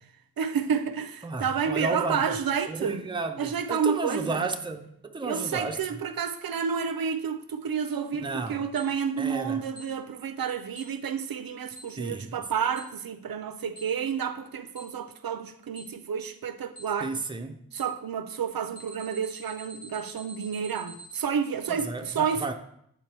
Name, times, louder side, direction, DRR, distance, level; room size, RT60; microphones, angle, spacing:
voice 1, 0.4-3.0 3.4-4.5 5.2-17.1 17.7-22.5, right 7 dB, 70° right, 0.5 m, -30 dB
voice 2, 1.2-2.2 2.7-5.8 8.1-8.6 9.2-9.6 12.0-12.4 17.0-17.6 21.7-22.5, right 3 dB, 15° right, 0.5 m, -32 dB
Alarm, 8.8-8.9 9.8-9.9 10.8-10.9 11.8-11.9 12.8-12.9 13.8-13.9 14.8-14.9 15.8-15.9 16.8-16.9 17.8-17.9 18.8-21.2, right 3 dB, 60° left, 1.2 m, -45 dB
8.4 x 4.4 x 3.3 m
wide cardioid pair, 105°, 37 cm